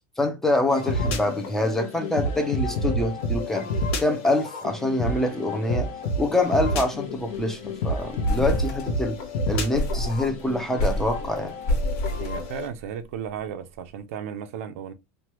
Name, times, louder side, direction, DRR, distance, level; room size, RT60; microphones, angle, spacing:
voice 1, 0.2-3.7 4.0-5.9 6.2-9.2 9.5-11.5, left 1 dB, 5° left, 0.4 m, -25 dB
sound 1, 0.7-12.7, left 1 dB, 65° left, 0.7 m, -30 dB
sound 2, 6.2-6.5 6.8-6.9 7.2-7.5 7.9-9.3 9.7-13.0, left 1 dB, 45° left, 1.2 m, -29 dB
voice 2, 12.1-14.9, right 8 dB, 80° right, 0.5 m, -35 dB
3.1 x 2.2 x 2.9 m
supercardioid pair, 160°, 8 cm